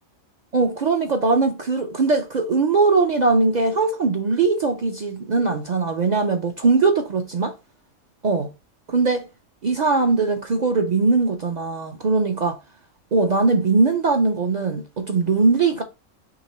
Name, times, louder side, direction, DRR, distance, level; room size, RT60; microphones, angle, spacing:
voice 1, 0.5-7.5 8.2-8.5 8.9-9.3 9.6-12.6 13.1-15.8, right 3 dB, 60° right, 0.4 m, -20 dB
3.9 x 3.1 x 4.1 m
omnidirectional pair, 1.3 m